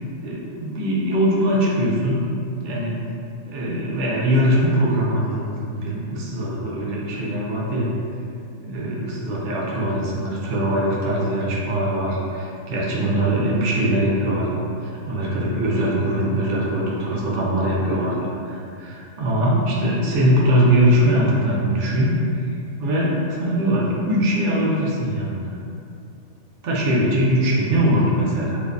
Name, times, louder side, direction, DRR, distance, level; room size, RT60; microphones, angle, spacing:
voice 1, 0.2-2.3 2.6-3.0 3.5-7.9 8.6-25.6 26.6-28.6, right 1 dB, 65° right, -5 dB, 0.8 m, -22 dB
2.6 x 2.1 x 2.4 m, 2.5 s
omnidirectional pair, 1.4 m